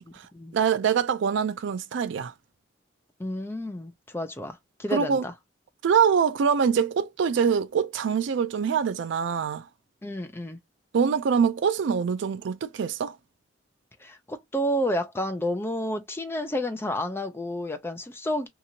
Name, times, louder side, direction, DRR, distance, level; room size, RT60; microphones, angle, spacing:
voice 1, 0.5-2.3 4.9-5.2 5.8-9.7 10.9-13.2, right 6 dB, 70° right, 0.3 m, -24 dB
voice 2, 3.2-5.3 10.0-10.6 14.0-18.5, equal, 10° left, 0.4 m, -30 dB
2.9 x 2.5 x 2.7 m
head